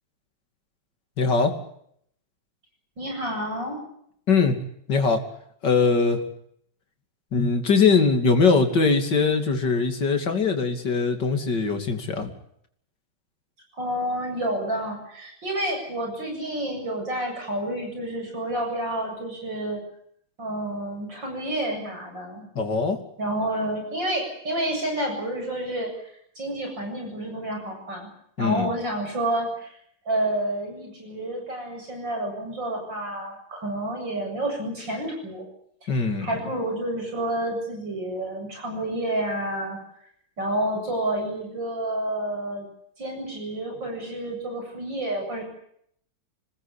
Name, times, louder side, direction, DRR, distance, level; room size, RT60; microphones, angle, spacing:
voice 1, 1.2-1.5 4.3-4.6 4.9-5.2 5.6-6.2 7.3-12.3 22.5-23.0 28.4-28.7 35.9-36.3, left 4 dB, 55° left, 6 dB, 3.4 m, -21 dB
voice 2, 3.0-3.8 13.7-19.8 20.4-22.5 23.2-28.1 28.4-29.7 30.1-35.5 35.8-35.9 36.2-39.8 40.4-42.7 43.0-45.4, right 1 dB, 60° right, 2 dB, 8.6 m, -29 dB
26.0 x 19.5 x 8.5 m, 0.69 s
omnidirectional pair, 2.3 m